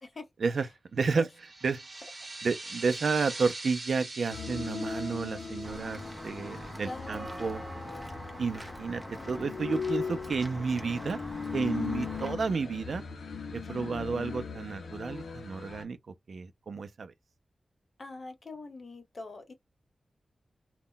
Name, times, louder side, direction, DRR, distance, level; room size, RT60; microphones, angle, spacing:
voice 1, 0.4-1.3 1.6-1.8 2.4-7.6 8.4-11.2 11.5-13.0 13.5-16.0 16.3-17.1, right 4 dB, 60° right, 0.3 m, -31 dB
sound 1, 1.3-7.6, right 2 dB, 35° right, 1.0 m, -43 dB
sound 2, 4.3-15.8, left 5 dB, 85° left, 0.4 m, -39 dB
Walk footsteps / Bell, 5.6-12.3, equal, ahead, 0.6 m, -43 dB
voice 2, 6.8-7.2 13.6-13.9 18.0-19.5, left 3 dB, 35° left, 0.6 m, -43 dB
2.1 x 2.0 x 3.7 m
wide cardioid pair, 175°, 0 cm